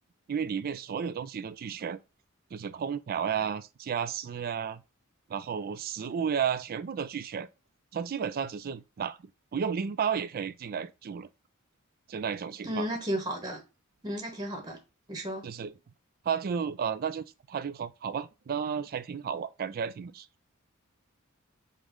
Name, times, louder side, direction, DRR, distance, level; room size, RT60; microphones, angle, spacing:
voice 1, 0.3-2.0 2.5-4.8 5.3-7.5 7.9-9.2 9.5-11.3 12.1-12.9 15.4-15.7 16.2-20.3, right 7 dB, 45° right, 0.3 m, -32 dB
voice 2, 12.6-13.6 14.0-14.8 15.1-15.5, equal, 20° right, 0.8 m, -33 dB
5.1 x 2.1 x 3.6 m
head